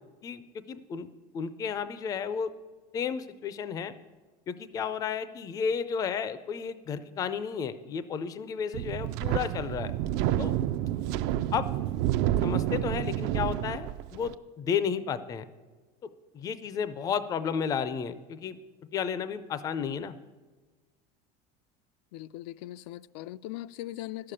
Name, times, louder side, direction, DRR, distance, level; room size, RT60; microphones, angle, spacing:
voice 1, 0.7-1.1 1.3-2.5 2.9-3.9 4.5-9.9 10.4-10.5 11.5-11.7 12.4-15.4 16.3-18.6 18.9-20.2, left 7 dB, 20° left, 0.4 m, -32 dB
Wind, 8.7-14.3, right 12 dB, 50° right, 0.4 m, -29 dB
voice 2, 22.1-24.3, left 15 dB, 80° left, 0.4 m, -40 dB
12.5 x 6.7 x 8.7 m
cardioid pair, 175°, 20 cm